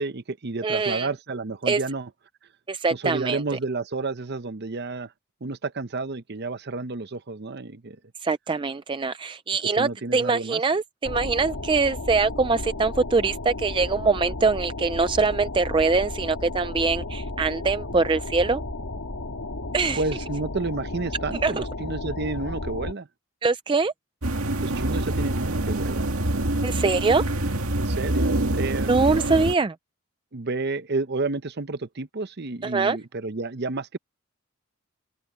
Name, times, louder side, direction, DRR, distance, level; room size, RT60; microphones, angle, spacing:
voice 1, 0.0-2.1 2.9-5.1 5.4-8.0 9.8-10.6 19.9-23.1 24.6-26.1 27.8-29.0 30.3-34.0, right 3 dB, 50° right, 0.8 m, -30 dB
voice 2, 0.6-1.1 1.7-1.8 2.7-3.4 8.2-18.6 19.7-20.0 21.4-21.6 23.4-23.9 26.6-27.3 28.9-29.8 32.6-33.0, right 4 dB, 20° right, 0.4 m, -23 dB
sound 1, 11.0-22.9, left 2 dB, 70° left, 1.9 m, -33 dB
sound 2, 24.2-29.5, right 1 dB, 75° right, 2.0 m, -26 dB
open air
head